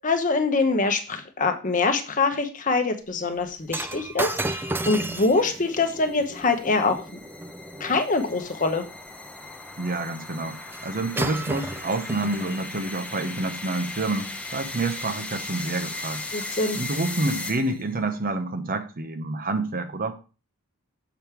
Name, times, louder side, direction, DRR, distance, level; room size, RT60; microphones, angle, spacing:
voice 1, 0.0-7.0 7.8-8.8 16.3-16.8, left 3 dB, 35° left, 6 dB, 1.0 m, -24 dB
sound 1, 3.2-18.0, left 2 dB, 5° left, 0.8 m, -38 dB
Shatter, 3.7-8.1 10.7-10.9 11.2-12.7 13.4-13.5, right 2 dB, 10° right, 0.4 m, -33 dB
voice 2, 9.8-16.2 16.7-20.1, right 2 dB, 40° right, 7 dB, 0.9 m, -28 dB
7.1 x 5.3 x 4.6 m, 0.33 s
head